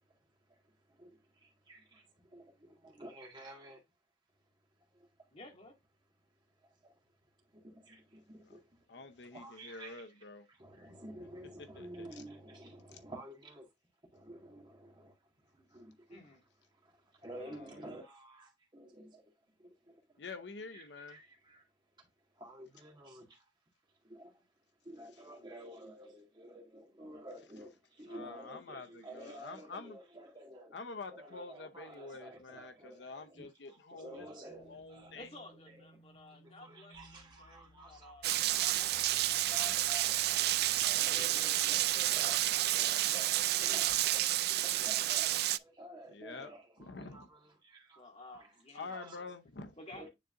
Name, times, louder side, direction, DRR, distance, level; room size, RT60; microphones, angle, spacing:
voice 1, 0.0-3.8 4.8-5.4 6.5-13.7 14.1-16.4 16.7-20.2 20.7-21.7 22.0-23.5 23.9-24.5 24.8-30.8 31.1-35.2 35.7-35.8 36.3-48.5 48.9-49.3 49.9-50.1, right 1 dB, 25° right, 1.8 m, -52 dB
voice 2, 5.3-5.8 16.1-16.4 35.1-38.3 38.8-40.1 41.1-43.7 47.1-47.2 47.9-49.0 49.8-50.1, left 1 dB, 35° left, 2.0 m, -54 dB
voice 3, 8.9-10.4 11.8-12.1 12.9-13.0 17.4-17.7 20.2-21.2 28.1-30.0 30.7-34.3 34.6-35.3 46.1-46.5 46.8-47.3 48.7-49.8, left 4 dB, 70° left, 0.8 m, -47 dB
sound 1, 34.5-42.8, right 1 dB, 10° left, 1.9 m, -61 dB
Rain, 38.2-45.6, right 14 dB, 60° right, 0.3 m, -30 dB
9.7 x 3.8 x 2.5 m
head